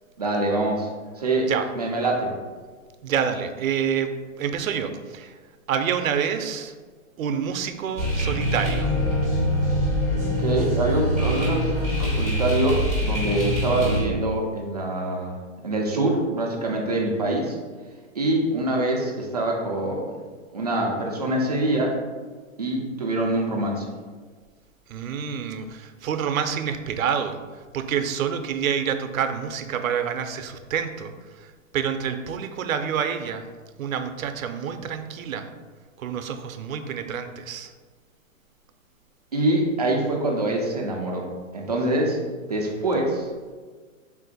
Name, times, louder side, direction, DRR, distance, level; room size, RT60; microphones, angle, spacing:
voice 1, 0.2-0.9 1.2-1.5 1.8-2.3 10.4-15.4 15.6-17.6 18.1-20.1 20.5-22.0 22.6-23.9 39.3-42.2 42.5-43.3, right 1 dB, 35° right, -1 dB, 0.4 m, -25 dB
voice 2, 3.0-5.4 5.7-6.7 7.2-8.9 24.9-27.4 27.7-33.4 33.8-35.5 36.0-37.7, right 7 dB, 90° right, 8 dB, 0.6 m, -27 dB
sound 1, 8.0-14.0, equal, 15° left, 1.0 m, -24 dB
3.7 x 2.5 x 4.0 m, 1.5 s
hypercardioid pair, 165°, 39 cm